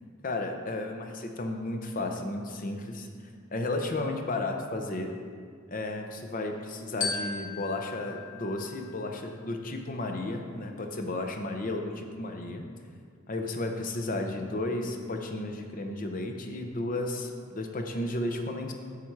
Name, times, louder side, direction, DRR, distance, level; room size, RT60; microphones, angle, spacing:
voice 1, 0.2-3.1 3.5-5.1 5.7-12.6 13.3-18.7, left 2 dB, 40° left, 4 dB, 0.7 m, -33 dB
Glockenspiel, 7.0-9.5, left 5 dB, 90° left, 1.3 m, -37 dB
8.5 x 5.9 x 4.7 m, 2.1 s
head